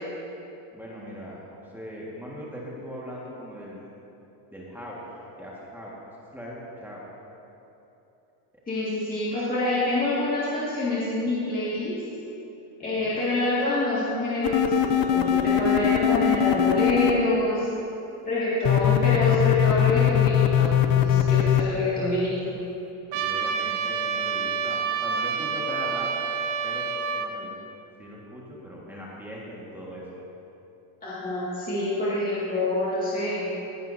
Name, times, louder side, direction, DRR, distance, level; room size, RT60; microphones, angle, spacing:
voice 1, 0.7-4.0 4.5-5.0 5.4-5.9 6.3-6.5 6.8-7.0 12.8-13.1 23.1-26.1 26.6-26.9 27.2-27.5 28.0-30.0, equal, 5° right, -6 dB, 1.7 m, -40 dB
voice 2, 8.7-12.0 12.8-17.7 18.2-22.5 31.0-33.5, left 1 dB, 15° left, -9 dB, 2.1 m, -26 dB
sound 1, 14.4-17.1 18.6-21.6, left 11 dB, 45° left, 0.7 m, -21 dB
Trumpet, 23.1-27.3, right 6 dB, 65° right, 1.0 m, -28 dB
16.0 x 11.0 x 2.7 m, 3.0 s
cardioid pair, 125°, 49 cm